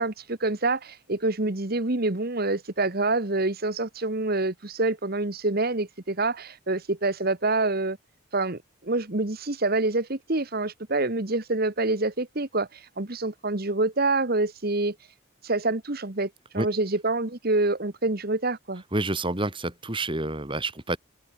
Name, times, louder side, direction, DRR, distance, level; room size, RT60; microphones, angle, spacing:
voice 1, 0.0-8.0 8.3-14.9 15.4-18.8, right 2 dB, 45° right, 1.5 m, -26 dB
voice 2, 18.9-21.0, right 2 dB, 25° right, 3.3 m, -28 dB
open air
head